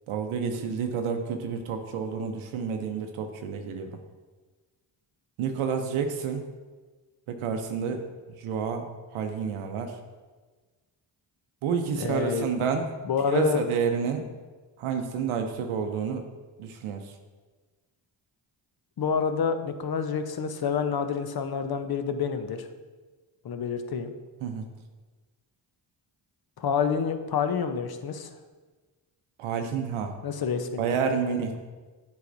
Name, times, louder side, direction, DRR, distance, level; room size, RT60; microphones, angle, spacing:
voice 1, 0.1-4.0 5.4-6.4 7.3-10.0 11.6-12.9 13.2-14.3 14.8-16.2 16.6-17.1 24.4-24.6 29.4-30.1 30.8-31.6, right 6 dB, 90° right, 5 dB, 0.6 m, -29 dB
voice 2, 11.9-12.5 13.0-13.6 19.0-22.7 23.4-24.1 26.6-28.3 30.2-30.8, left 6 dB, 50° left, 8 dB, 0.7 m, -28 dB
8.1 x 4.8 x 2.6 m, 1.3 s
cardioid pair, 55°, 48 cm